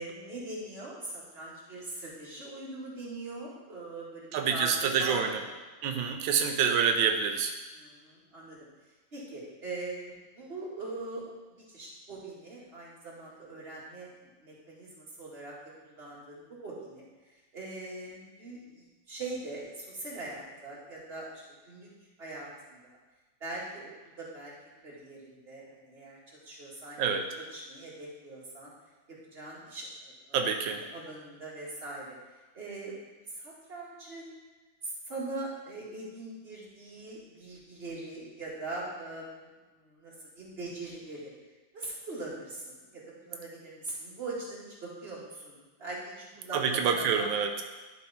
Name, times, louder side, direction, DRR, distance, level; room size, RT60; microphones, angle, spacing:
voice 1, 0.0-5.6 7.7-8.6 9.1-10.1 10.3-11.2 11.7-14.1 14.4-15.5 15.8-17.0 17.5-21.9 22.2-22.8 23.4-23.9 24.2-24.5 24.8-28.7 29.3-32.2 32.5-33.0 33.3-34.4 34.8-41.3 41.7-47.3, right 2 dB, 30° right, -6 dB, 2.2 m, -41 dB
voice 2, 4.3-5.4 5.8-7.5 27.0-27.2 30.3-30.8 46.5-47.5, right 6 dB, 90° right, 5 dB, 1.4 m, -27 dB
11.0 x 4.7 x 4.2 m, 1.2 s
omnidirectional pair, 2.1 m